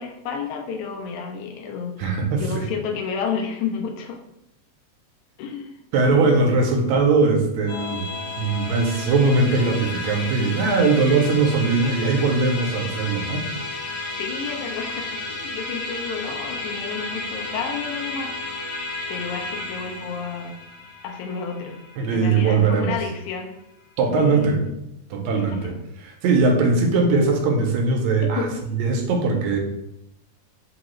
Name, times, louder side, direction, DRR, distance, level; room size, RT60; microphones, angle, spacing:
voice 1, 0.0-2.1 2.4-4.2 5.4-5.8 6.2-6.3 14.2-15.1 15.4-18.3 19.1-20.6 21.0-21.8 22.1-23.5 24.2-24.8 25.4-25.8 28.4-28.5, left 6 dB, 90° left, 2 dB, 2.0 m, -31 dB
voice 2, 2.0-2.7 5.9-8.1 8.4-13.4 22.0-23.0 24.0-24.6 25.1-29.6, right 3 dB, 80° right, 3 dB, 1.7 m, -20 dB
Musical instrument, 7.7-23.2, left 2 dB, 70° left, 1.8 m, -33 dB
4.9 x 2.3 x 3.0 m, 0.83 s
omnidirectional pair, 3.3 m